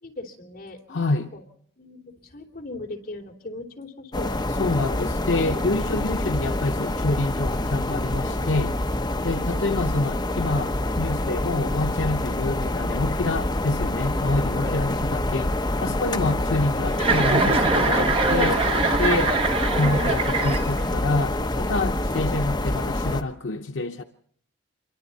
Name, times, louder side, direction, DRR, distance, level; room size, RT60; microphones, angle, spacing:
voice 1, 0.0-1.0 1.3-1.4 1.8-4.4 9.3-9.7 14.6-14.8, left 2 dB, 45° left, 3.1 m, -39 dB
voice 2, 0.9-1.3 4.6-8.8 9.2-15.6 15.8-18.7 19.0-19.4 19.8-24.0, left 2 dB, 75° left, 0.8 m, -27 dB
sound 1, 4.1-23.2, left 1 dB, 20° left, 0.9 m, -26 dB
Chuckle chortle, 16.9-21.0, right 3 dB, 30° right, 1.1 m, -23 dB
27.0 x 23.0 x 4.1 m
head